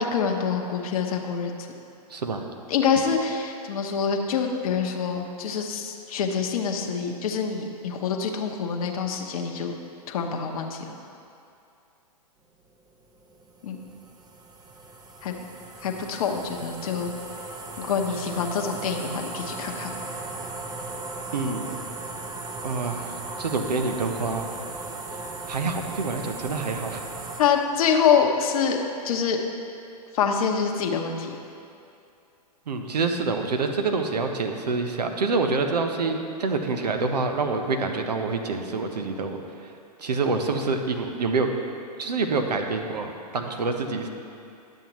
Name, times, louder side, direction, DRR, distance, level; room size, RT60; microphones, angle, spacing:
voice 1, 0.0-1.5 2.7-9.7 10.1-10.8 13.6-13.8 15.2-15.4 15.8-17.1 17.8-19.9 27.4-28.8 29.0-29.4 30.1-31.3, left 6 dB, 60° left, 2 dB, 0.9 m, -25 dB
voice 2, 2.1-2.4 21.3-21.7 22.6-24.5 25.2-27.0 32.7-39.7 40.0-41.5 42.0-44.1, right 4 dB, 85° right, 5 dB, 0.8 m, -27 dB
sound 1, 13.0-27.4, right 3 dB, 20° right, 0.7 m, -37 dB
11.0 x 7.4 x 3.0 m, 2.6 s
hypercardioid pair, 115°, 21 cm